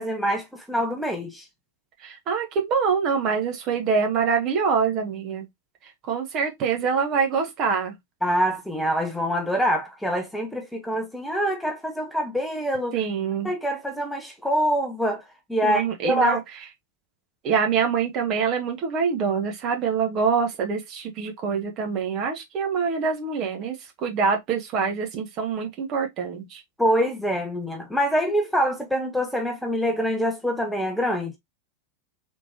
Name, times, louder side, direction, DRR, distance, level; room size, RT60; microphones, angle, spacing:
voice 1, 0.0-1.5 8.2-12.9 13.4-16.4 26.8-31.4, equal, ahead, 0.8 m, -25 dB
voice 2, 2.0-5.5 6.0-8.0 12.9-13.5 15.6-16.4 17.4-26.6, right 6 dB, 35° right, 1.1 m, -25 dB
3.6 x 3.0 x 2.7 m
figure-of-eight pair, 90°, 0 cm